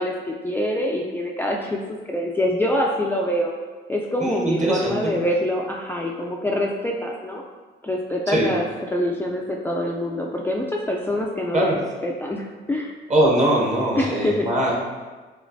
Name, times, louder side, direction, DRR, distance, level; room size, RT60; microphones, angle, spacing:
voice 1, 0.0-1.8 2.1-3.5 3.9-7.4 7.8-12.9 14.0-14.5, left 1 dB, 10° left, -2 dB, 0.4 m, -25 dB
voice 2, 4.2-5.1 8.3-8.5 11.5-11.8 13.1-14.7, right 1 dB, 35° right, -2 dB, 1.1 m, -21 dB
5.1 x 3.0 x 2.6 m, 1.3 s
cardioid pair, 90°, 20 cm